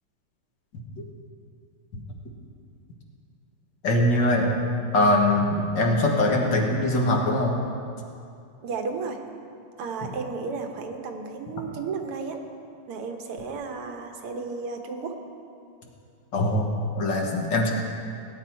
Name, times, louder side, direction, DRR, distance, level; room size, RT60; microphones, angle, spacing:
voice 1, 3.8-4.5 4.9-7.6 16.3-17.7, left 1 dB, 55° left, 0 dB, 2.1 m, -22 dB
voice 2, 8.6-9.2 9.8-12.4 12.9-15.1, right 4 dB, 90° right, 4 dB, 2.0 m, -33 dB
18.5 x 9.7 x 4.5 m, 2.5 s
omnidirectional pair, 2.4 m